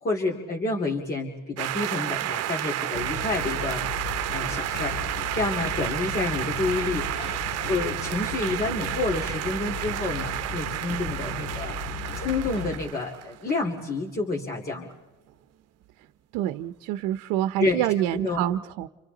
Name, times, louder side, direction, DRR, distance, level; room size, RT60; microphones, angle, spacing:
voice 1, 0.0-7.2 7.7-14.9 17.6-17.9 18.1-18.4, left 3 dB, 30° left, -1 dB, 2.5 m, -29 dB
sound 1, 1.6-13.6, right 13 dB, 55° right, 0.9 m, -31 dB
sound 2, 2.9-12.8, left 5 dB, 80° left, 3.5 m, -36 dB
voice 2, 16.3-18.9, right 13 dB, 90° right, 12 dB, 0.7 m, -27 dB
30.0 x 27.5 x 3.9 m, 1.2 s
cardioid pair, 115°, 30 cm